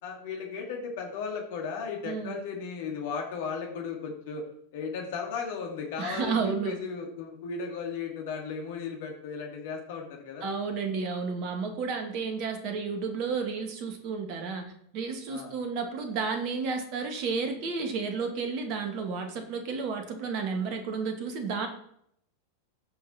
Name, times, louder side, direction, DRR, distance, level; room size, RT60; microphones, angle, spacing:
voice 1, 0.0-4.4 4.7-10.5 15.3-15.5, left 5 dB, 50° left, 1 dB, 2.4 m, -35 dB
voice 2, 2.0-2.4 6.0-6.8 10.4-14.6 14.9-21.7, right 5 dB, 40° right, 5 dB, 2.2 m, -32 dB
16.0 x 5.8 x 4.4 m, 0.69 s
figure-of-eight pair, 90°, 0 cm